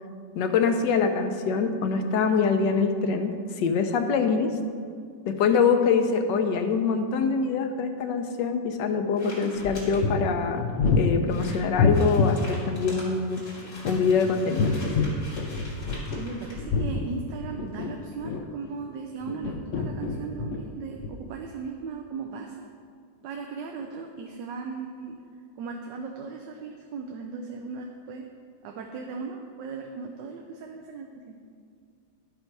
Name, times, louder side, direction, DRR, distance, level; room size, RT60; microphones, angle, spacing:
voice 1, 0.3-4.5 5.3-10.6 11.0-13.4 13.8-14.7, left 5 dB, 85° left, 6 dB, 1.4 m, -24 dB
sound 1, 9.1-10.0 10.7-10.8 11.0-11.1 11.3-16.6, left 1 dB, 45° left, 2.6 m, -44 dB
sound 2, 9.6-12.4 13.6-16.3 16.6-18.7 19.2-20.7 21.0-21.1, left 4 dB, 65° left, 0.7 m, -27 dB
voice 2, 16.2-22.7 23.2-25.2 25.6-28.3 28.6-31.3, right 5 dB, 85° right, 2 dB, 1.3 m, -37 dB
11.5 x 5.6 x 4.5 m, 2.2 s
omnidirectional pair, 1.9 m